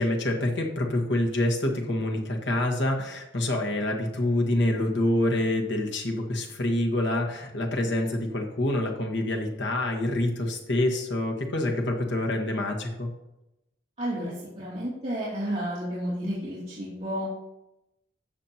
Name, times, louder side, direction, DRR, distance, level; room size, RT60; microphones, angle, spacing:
voice 1, 0.0-13.1, left 1 dB, 65° left, 2 dB, 1.6 m, -26 dB
voice 2, 14.0-17.2, equal, 35° right, -10 dB, 2.7 m, -31 dB
13.0 x 7.2 x 2.9 m, 0.89 s
head